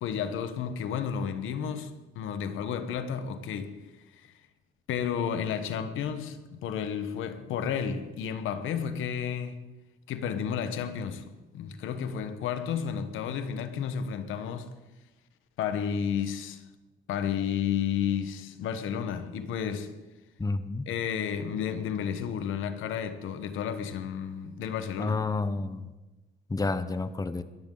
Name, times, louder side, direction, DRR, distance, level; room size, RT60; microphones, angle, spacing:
voice 1, 0.0-3.9 4.1-4.3 4.9-9.6 10.1-14.7 15.6-16.6 17.1-19.9 20.9-25.2, left 8 dB, 85° left, 1.3 m, -32 dB
voice 2, 20.4-20.9 25.0-25.9 26.5-27.4, left 3 dB, 20° left, 0.9 m, -30 dB
22.0 x 14.0 x 4.0 m
cardioid pair, 90°, 20 cm